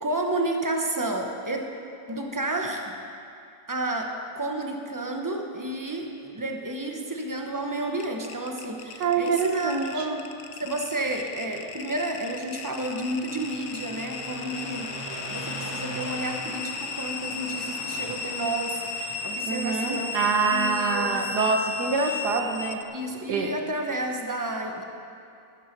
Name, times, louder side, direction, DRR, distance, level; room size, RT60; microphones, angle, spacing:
voice 1, 0.0-1.6 2.1-3.0 3.7-10.3 10.6-14.9 15.3-20.2 20.5-21.2 22.9-24.8, right 2 dB, 15° right, 2 dB, 0.8 m, -31 dB
Car passing by, 7.6-23.6, right 1 dB, 15° left, 3.0 m, -44 dB
sound 1, 8.0-22.8, left 5 dB, 60° left, 1.1 m, -35 dB
voice 2, 9.0-10.1 19.4-22.8 23.3-23.5, right 5 dB, 70° right, 4 dB, 1.7 m, -25 dB
13.0 x 11.0 x 6.0 m, 2.5 s
omnidirectional pair, 1.9 m